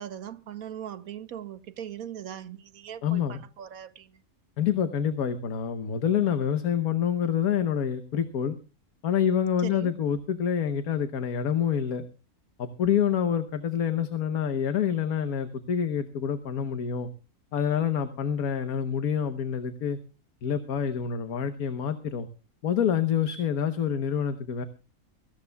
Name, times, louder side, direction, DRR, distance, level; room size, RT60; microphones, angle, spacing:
voice 1, 0.0-4.2 9.6-10.0, right 10 dB, 70° right, 1.3 m, -40 dB
voice 2, 3.0-3.4 4.6-8.6 9.0-12.0 12.6-17.1 17.5-20.0 20.4-22.3 22.6-24.6, left 8 dB, 75° left, 1.5 m, -27 dB
24.0 x 14.5 x 2.3 m
omnidirectional pair, 1.6 m